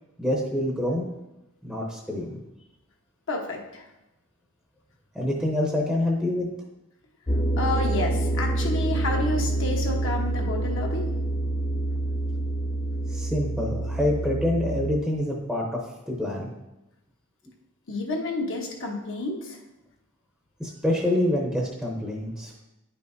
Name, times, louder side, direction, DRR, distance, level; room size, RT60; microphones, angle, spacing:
voice 1, 0.2-1.1 1.6-2.4 5.1-6.5 13.1-15.8 16.1-16.5 20.6-22.5, left 1 dB, ahead, -2 dB, 0.7 m, -26 dB
voice 2, 3.3-3.9 7.6-11.1 17.9-19.6, left 2 dB, 65° left, 0 dB, 1.2 m, -30 dB
sound 1, 7.3-15.0, right 2 dB, 15° left, 0.4 m, -27 dB
9.8 x 5.5 x 2.6 m, 0.97 s
head